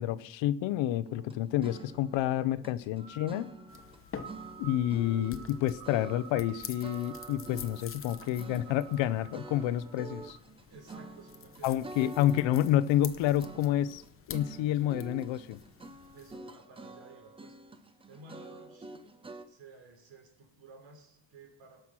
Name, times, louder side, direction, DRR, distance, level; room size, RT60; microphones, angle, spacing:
voice 1, 0.0-3.5 4.6-10.4 11.6-14.0 14.3-15.6, left 12 dB, 85° left, 17 dB, 0.7 m, -29 dB
sound 1, 1.0-4.0 4.2-6.5 6.8-19.5, right 3 dB, 10° right, 0.5 m, -48 dB
sound 2, 1.9-10.4, right 8 dB, 50° right, 3.0 m, -52 dB
sound 3, 3.7-16.4, left 7 dB, 30° left, 0.8 m, -49 dB
voice 2, 10.7-12.1 16.1-17.6 17.9-19.2 19.4-21.8, right 3 dB, 80° right, 2 dB, 3.7 m, -54 dB
17.5 x 5.9 x 6.1 m, 0.77 s
cardioid pair, 140°, 44 cm